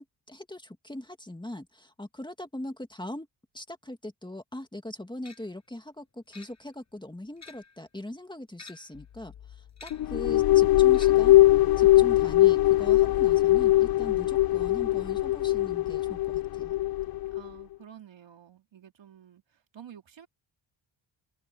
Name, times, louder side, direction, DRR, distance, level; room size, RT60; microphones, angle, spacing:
voice 1, 0.0-3.3 3.5-11.4 11.8-16.8, left 1 dB, 10° left, 2.1 m, -41 dB
sound 1, 5.2-5.6 6.3-6.9 7.3-7.8 8.5-9.1 9.8-10.2 10.9-11.4, left 4 dB, 35° left, 5.7 m, -51 dB
sound 2, 8.9-16.3, left 10 dB, 85° left, 4.2 m, -54 dB
sound 3, 9.9-17.5, left 16 dB, 50° left, 0.5 m, -21 dB
voice 2, 17.3-20.3, right 9 dB, 65° right, 3.3 m, -50 dB
cardioid pair, 90°, 48 cm